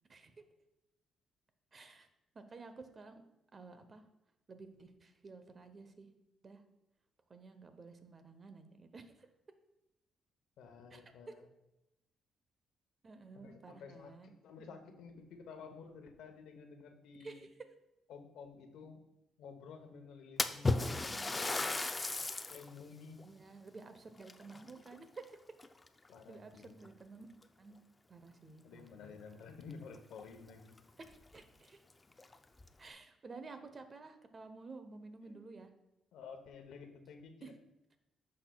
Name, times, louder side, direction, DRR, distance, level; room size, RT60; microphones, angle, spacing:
voice 1, 0.1-0.4 1.7-2.1 2.3-3.2 3.5-4.0 4.5-6.1 6.4-6.6 7.3-9.3 10.9-11.3 13.0-14.9 17.2-17.5 21.0-21.4 23.2-25.4 26.3-27.3 27.6-27.8 28.1-29.2 31.0-31.8 32.8-35.7 37.4-37.5, right 3 dB, 35° right, 8 dB, 0.9 m, -52 dB
voice 2, 10.6-11.5 13.3-17.5 18.1-19.0 19.4-21.0 21.5-21.8 22.5-23.2 26.1-26.8 28.6-30.8 35.2-35.4 36.1-37.5, left 5 dB, 85° left, 6 dB, 0.9 m, -52 dB
Splash splatter, 20.4-22.7 23.2-23.3 24.2-25.2 25.6-26.1 26.9-27.0 27.4-27.5 29.7-29.8 30.1-30.2 30.8-30.9 31.3-31.4 32.1-32.7, left 3 dB, 20° left, 0.5 m, -35 dB
10.0 x 6.4 x 2.3 m, 0.89 s
cardioid pair, 90°, 0 cm